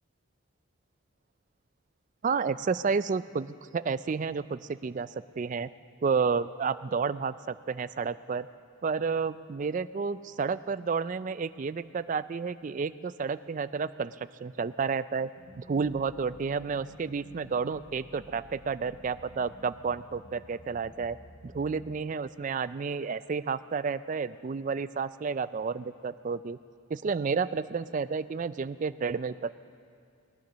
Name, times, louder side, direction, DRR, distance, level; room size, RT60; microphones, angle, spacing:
voice 1, 2.2-5.7 6.0-8.5 8.8-15.3 15.6-21.2 21.4-26.6 26.9-29.5, right 5 dB, 35° right, 15 dB, 0.3 m, -31 dB
sound 1, 15.4-22.0, equal, 75° left, 1.4 m, -52 dB
20.5 x 10.5 x 6.2 m, 2.3 s
head